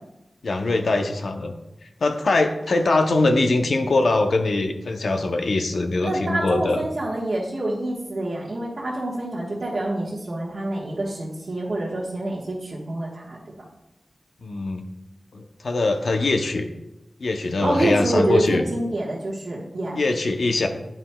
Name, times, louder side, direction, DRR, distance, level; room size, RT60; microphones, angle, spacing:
voice 1, 0.4-1.5 2.0-6.8 14.4-14.8 15.3-16.7 17.2-18.6 20.0-20.7, left 2 dB, 85° left, 5 dB, 0.6 m, -22 dB
voice 2, 6.0-13.4 17.6-20.0, right 1 dB, 60° right, -7 dB, 1.2 m, -26 dB
8.7 x 5.8 x 2.2 m, 0.93 s
wide cardioid pair, 70°, 0 cm